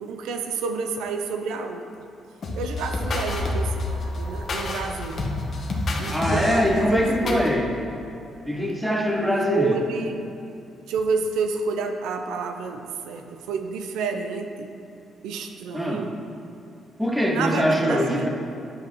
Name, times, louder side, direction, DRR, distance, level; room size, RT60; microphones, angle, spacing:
voice 1, 0.0-1.9 2.6-5.3 6.0-7.5 9.5-10.3 10.9-14.7 15.2-16.1 17.3-18.3, right 4 dB, 90° right, 5 dB, 0.6 m, -29 dB
sound 1, 2.4-7.5, left 2 dB, 50° left, 1.2 m, -28 dB
voice 2, 6.1-7.7 8.4-9.8 15.7-16.1 17.0-18.3, equal, 5° right, 0 dB, 1.2 m, -23 dB
10.5 x 7.3 x 3.1 m, 2.8 s
cardioid pair, 90°, 0 cm